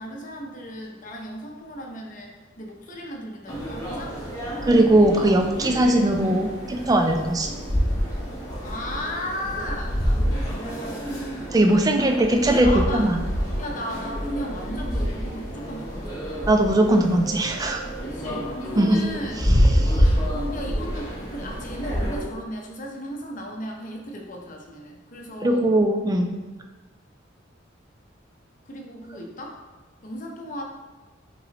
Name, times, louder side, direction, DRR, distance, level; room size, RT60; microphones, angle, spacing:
voice 1, 0.0-4.2 8.6-11.1 11.9-13.0 13.6-16.2 18.0-19.4 20.5-25.7 28.7-29.6 30.0-30.6, equal, 40° left, 0 dB, 0.7 m, -35 dB
sound 1, 3.5-22.2, equal, 20° left, 0.9 m, -27 dB
voice 2, 4.6-7.5 11.5-12.7 12.9-13.2 16.5-17.8 18.8-19.0 19.4-20.1 25.4-26.4, right 1 dB, 20° right, 4 dB, 0.3 m, -20 dB
5.3 x 3.1 x 2.9 m, 1.3 s
head